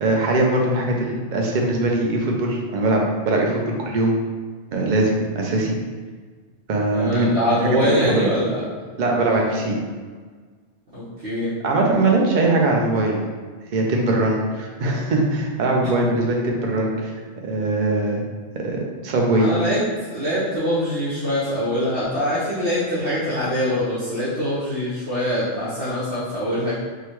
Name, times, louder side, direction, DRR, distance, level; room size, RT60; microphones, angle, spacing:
voice 1, 0.0-4.1 4.7-5.7 6.7-7.3 7.6-8.2 9.0-9.8 11.6-13.3 13.7-17.1 17.4-18.2 18.6-19.5, right 2 dB, 50° right, 0 dB, 0.7 m, -21 dB
voice 2, 6.9-8.6 9.2-9.4 10.9-11.5 19.4-19.8 20.1-26.7, equal, 75° right, -12 dB, 1.3 m, -23 dB
4.7 x 2.2 x 3.0 m, 1.5 s
omnidirectional pair, 1.1 m